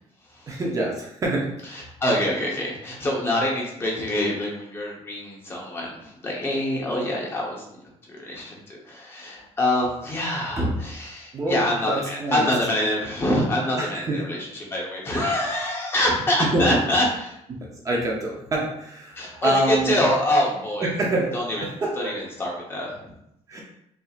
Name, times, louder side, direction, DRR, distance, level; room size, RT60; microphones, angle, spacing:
voice 1, 0.5-1.8 10.6-10.7 11.3-12.5 13.8-14.2 16.5-16.8 17.8-20.0 20.3-20.4 20.8-21.3 21.8-22.1 23.5-23.6, right 1 dB, 30° right, -2 dB, 0.7 m, -26 dB
voice 2, 1.7-7.6 8.1-17.4 19.1-20.9 21.3-23.1, left 1 dB, 20° left, -2 dB, 0.8 m, -25 dB
5.6 x 2.7 x 2.4 m, 0.77 s
cardioid pair, 170°, 12 cm